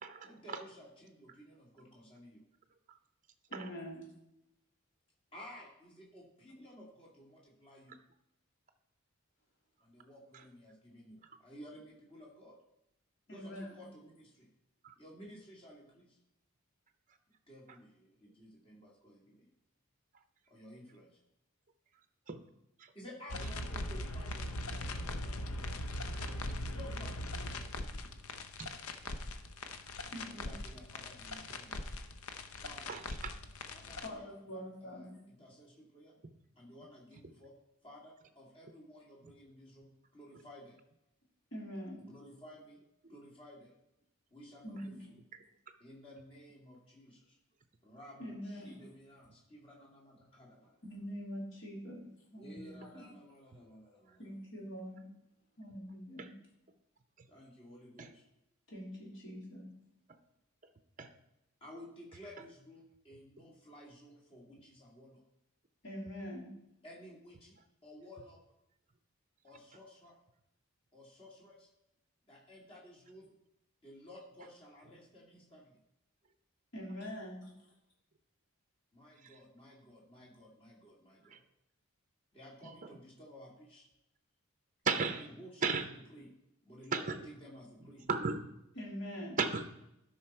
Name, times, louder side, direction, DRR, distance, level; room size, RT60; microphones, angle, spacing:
voice 1, 0.2-2.4 5.3-8.0 9.8-12.6 13.3-14.5 15.0-16.2 17.5-19.5 20.5-21.2 22.9-25.4 26.7-28.4 30.3-31.8 32.6-32.9 33.7-36.1 36.6-37.5 37.8-40.8 42.0-42.8 43.1-43.7 44.3-44.9 45.8-47.4 47.8-50.8 52.4-54.3 57.3-58.3 61.6-65.2 66.8-67.6 67.8-68.4 69.4-70.2 70.9-71.7 72.3-73.3 73.8-75.8 78.9-81.4 82.3-83.9 84.9-86.3 86.6-88.0, equal, 25° left, -3 dB, 2.4 m, -54 dB
voice 2, 3.5-4.1 13.3-13.8 30.1-30.6 33.8-35.3 41.5-42.0 44.6-45.1 48.2-48.8 50.8-53.1 54.2-55.1 55.6-56.3 58.7-59.7 65.8-66.5 76.7-77.5 88.8-89.4, equal, 55° left, -3 dB, 3.0 m, -44 dB
sound 1, 23.3-34.1, left 1 dB, 80° left, 0.7 m, -40 dB
voice 3, 32.9-33.3 56.2-56.3 58.0-58.1 61.0-61.1 79.2-79.3 81.3-81.4 84.8-85.3 85.6-85.9 86.9-87.3 88.1-88.4 89.4-89.6, right 5 dB, 35° right, 8 dB, 0.6 m, -35 dB
12.0 x 5.6 x 4.4 m, 0.83 s
head